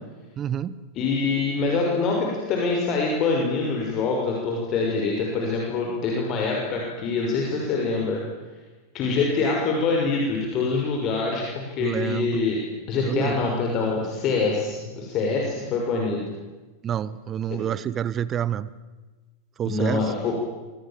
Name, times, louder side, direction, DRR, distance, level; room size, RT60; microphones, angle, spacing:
voice 1, 0.4-0.8 11.8-12.4 13.0-13.4 16.8-18.7 19.6-20.1, right 9 dB, 25° right, 18 dB, 1.1 m, -28 dB
voice 2, 0.9-8.2 8.9-12.6 12.9-16.2 19.6-20.4, left 4 dB, 35° left, 0 dB, 6.3 m, -25 dB
28.5 x 25.5 x 7.6 m, 1.2 s
figure-of-eight pair, 90°, 0 cm